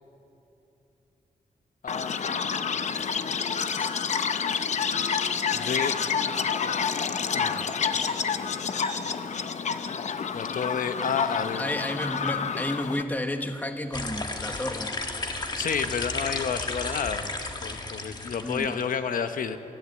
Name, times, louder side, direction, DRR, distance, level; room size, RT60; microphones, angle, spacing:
voice 1, 1.8-2.1 3.1-3.2 5.5-5.9 7.3-7.7 10.3-11.7 15.6-17.3 17.6-19.6, left 6 dB, 80° left, 9 dB, 1.1 m, -30 dB
Chirp tweet, 1.9-13.0, left 6 dB, 55° left, 0.7 m, -28 dB
sound 1, 3.3-4.2 4.5-4.6 5.0-5.3 7.8-8.2 8.8-9.0 9.7-10.3 11.3-12.1 14.0-15.6 16.9-17.1, equal, 10° right, 3.7 m, -48 dB
voice 2, 11.6-15.0 18.4-18.7, left 1 dB, 10° left, 6 dB, 1.0 m, -31 dB
sound 2, 13.9-18.9, left 3 dB, 30° left, 1.3 m, -33 dB
24.5 x 14.5 x 7.9 m, 3.0 s
wide cardioid pair, 165°, 14 cm